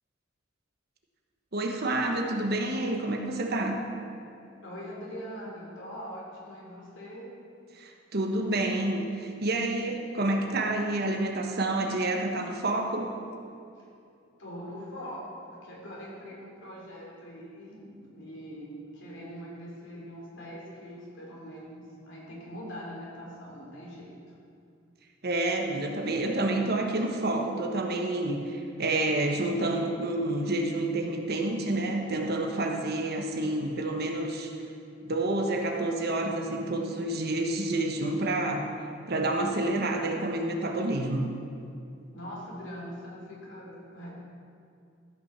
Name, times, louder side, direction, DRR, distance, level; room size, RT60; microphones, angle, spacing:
voice 1, 1.5-3.8 7.8-13.1 25.2-34.5 35.0-38.7 39.1-41.3, right 2 dB, 55° right, 2 dB, 1.2 m, -29 dB
voice 2, 4.6-7.3 13.7-13.9 14.4-24.3 42.1-44.1, equal, 65° left, -3 dB, 3.2 m, -42 dB
14.0 x 6.1 x 6.7 m, 2.5 s
head